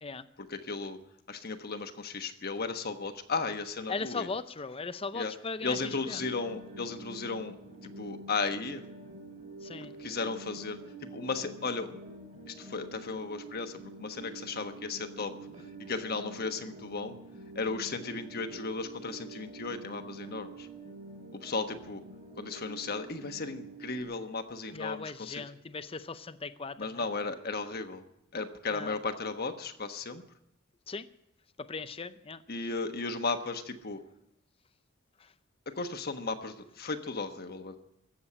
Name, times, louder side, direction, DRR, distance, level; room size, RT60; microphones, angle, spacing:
voice 1, 0.4-1.0 1.3-4.3 5.1-5.3 5.6-7.6 7.8-8.8 10.0-12.0 12.5-15.3 15.8-17.1 17.5-20.7 21.3-22.0 22.4-25.4 26.8-28.0 28.3-30.2 32.5-34.0 35.7-37.8, left 4 dB, 50° left, 7 dB, 1.2 m, -35 dB
voice 2, 3.9-5.8 6.1-6.2 9.6-9.9 24.7-27.0 28.7-28.9 30.9-31.1 31.6-32.4 35.2-35.3, left 4 dB, 30° left, 11 dB, 0.6 m, -38 dB
sound 1, 5.6-24.0, right 2 dB, 40° right, 4.1 m, -47 dB
16.0 x 7.4 x 9.8 m, 0.82 s
head